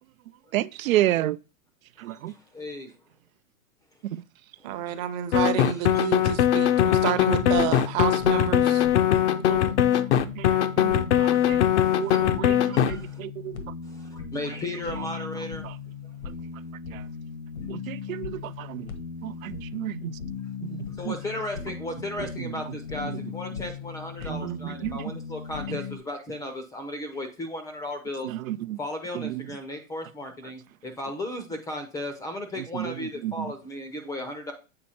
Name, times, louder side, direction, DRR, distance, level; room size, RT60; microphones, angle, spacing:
voice 1, 0.5-1.4 2.0-2.3 4.1-4.2 9.3-9.6 10.1-11.6 12.0-13.6 15.6-15.7 16.9-17.0 17.7-18.9 19.2-20.2 20.7-21.1 22.4-22.6 23.0-23.1 24.2-25.1 25.7-25.8 28.2-28.8 29.1-29.4 32.7-33.5, right 14 dB, 75° right, 0.5 m, -31 dB
voice 2, 2.0-2.9 4.6-4.7 5.6-6.2 8.0-8.1 9.1-9.2 11.2-12.2 12.7-13.2 13.8-15.7 21.0-28.3 28.8-34.5, left 1 dB, 10° left, 0.6 m, -36 dB
voice 3, 4.6-8.9, right 10 dB, 30° right, 0.8 m, -29 dB
sound 1, 5.3-12.9, left 10 dB, 55° left, 0.7 m, -21 dB
sound 2, 7.0-26.0, left 6 dB, 80° left, 1.6 m, -37 dB
7.7 x 4.3 x 4.2 m
hypercardioid pair, 150°, 41 cm